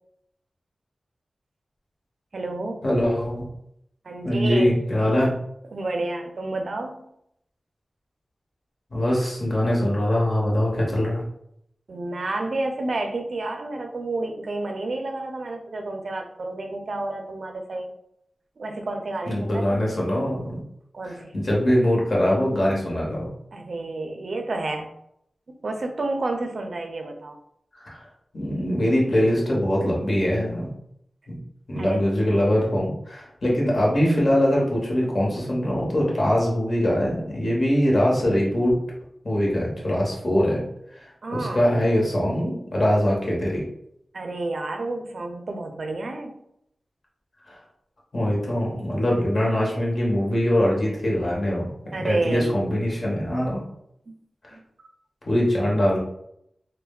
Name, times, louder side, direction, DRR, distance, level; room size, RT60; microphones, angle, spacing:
voice 1, 2.3-2.8 4.0-4.7 5.7-7.1 11.9-17.9 18.6-19.9 20.9-21.3 23.5-24.9 25.5-27.4 31.8-32.0 41.2-41.7 44.1-46.4 51.9-52.6 54.1-54.2 54.5-54.6, right 2 dB, 70° right, 4 dB, 0.4 m, -30 dB
voice 2, 2.8-3.5 4.2-5.3 8.9-11.2 19.3-20.6 21.3-23.3 27.9-28.0 28.3-30.7 31.3-31.4 31.7-38.8 39.2-40.6 41.3-43.6 48.1-51.7 52.0-53.6 55.3-56.0, equal, 55° left, -3 dB, 0.9 m, -22 dB
3.2 x 2.1 x 2.2 m, 0.75 s
cardioid pair, 55°, 0 cm